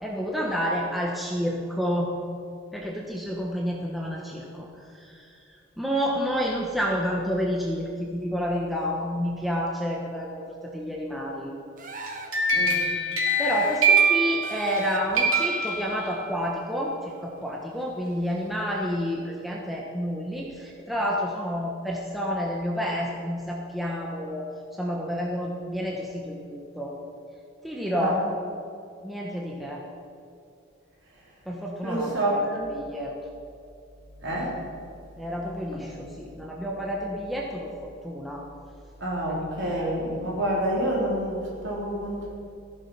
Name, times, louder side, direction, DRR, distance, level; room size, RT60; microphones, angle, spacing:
voice 1, 0.0-2.1 2.7-4.7 4.9-5.3 5.8-11.5 13.4-24.5 24.8-26.9 27.6-28.2 29.0-29.8 31.5-33.1 35.2-38.4 39.3-40.0, equal, ahead, -3 dB, 1.1 m, -29 dB
sound 1, 11.8-12.5 13.2-14.0 14.4-15.3, right 3 dB, 40° right, 1.1 m, -39 dB
sound 2, 12.1-14.8 15.1-16.4, right 3 dB, 90° right, 2.9 m, -24 dB
voice 2, 27.9-28.3 31.8-32.6 34.2-34.6 35.7-35.8 39.0-42.3, right 1 dB, 55° right, -5 dB, 4.1 m, -28 dB
15.0 x 10.0 x 5.7 m, 2.4 s
head